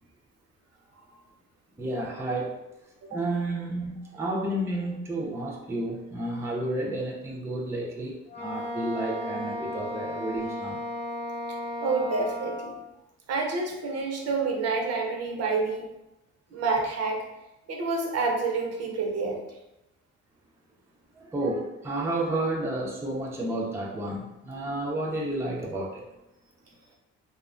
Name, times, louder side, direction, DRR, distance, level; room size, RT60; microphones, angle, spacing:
voice 1, 1.8-2.6 3.1-10.8 21.2-26.0, right 1 dB, 10° right, -2 dB, 0.4 m, -31 dB
Wind instrument woodwind instrument, 8.3-12.8, left 1 dB, 30° left, 0.9 m, -34 dB
voice 2, 11.8-12.7 13.3-15.9 16.5-17.2 17.7-19.4, right 3 dB, 55° right, 1 dB, 0.6 m, -28 dB
2.5 x 2.1 x 2.4 m, 0.92 s
cardioid pair, 90°, 30 cm